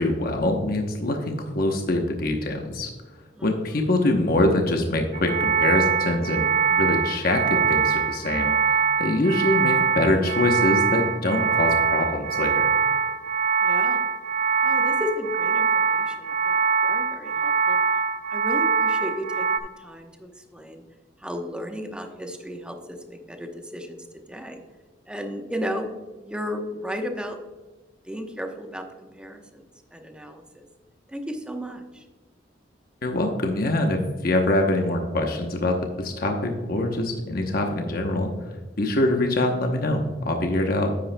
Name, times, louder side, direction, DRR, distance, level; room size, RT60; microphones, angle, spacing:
voice 1, 0.0-2.9 3.4-8.5 9.0-12.7 33.0-38.3 38.8-40.9, left 1 dB, 55° left, 3 dB, 0.9 m, -24 dB
voice 2, 3.3-3.8 13.6-14.1 14.6-17.8 18.3-20.8 21.2-24.0 24.3-24.6 25.1-25.9 26.2-27.4 28.1-29.6 29.9-30.6 31.1-32.0, equal, 5° right, 4 dB, 0.9 m, -34 dB
sound 1, 5.1-19.6, right 5 dB, 40° right, 0.6 m, -23 dB
10.0 x 8.5 x 2.2 m, 1.3 s
head